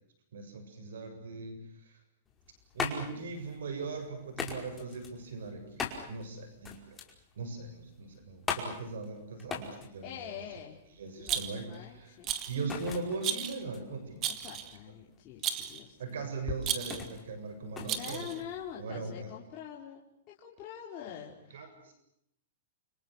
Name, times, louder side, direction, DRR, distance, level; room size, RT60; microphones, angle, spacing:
voice 1, 0.3-2.0 2.7-7.0 7.4-10.4 11.0-12.2 12.5-14.4 16.0-18.3 18.8-19.3 21.5-21.9, right 3 dB, 85° right, 8 dB, 7.4 m, -40 dB
sound 1, 2.3-18.8, left 5 dB, 15° left, 5.2 m, -41 dB
voice 2, 10.0-10.8 11.2-12.3 14.3-16.3 17.8-21.9, left 9 dB, 30° left, -4 dB, 4.8 m, -45 dB
Rattle, 11.3-11.8 12.2-12.6 13.2-13.6 14.2-14.7 15.4-15.8 16.6-17.1 17.9-18.4, right 10 dB, 30° right, 2.2 m, -34 dB
30.0 x 26.5 x 6.5 m, 0.74 s
hypercardioid pair, 155°, 0 cm